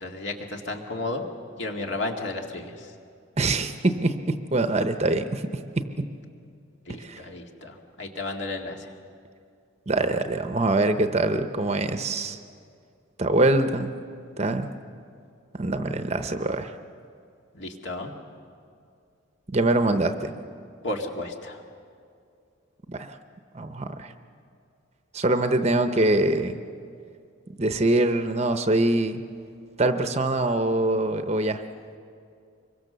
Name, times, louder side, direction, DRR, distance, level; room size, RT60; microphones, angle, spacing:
voice 1, 0.0-1.2 1.6-2.7 6.9-8.8 17.5-18.1 20.8-21.6, left 2 dB, 60° left, 2 dB, 2.3 m, -33 dB
voice 2, 3.4-5.4 6.0-6.1 7.0-7.2 9.9-12.4 13.2-13.9 14.4-14.7 15.5-16.7 19.5-20.3 22.9-23.2 23.5-24.1 25.1-26.6 27.6-29.2 29.8-31.6, right 2 dB, 30° right, 8 dB, 0.8 m, -24 dB
25.5 x 23.0 x 6.9 m, 2.4 s
head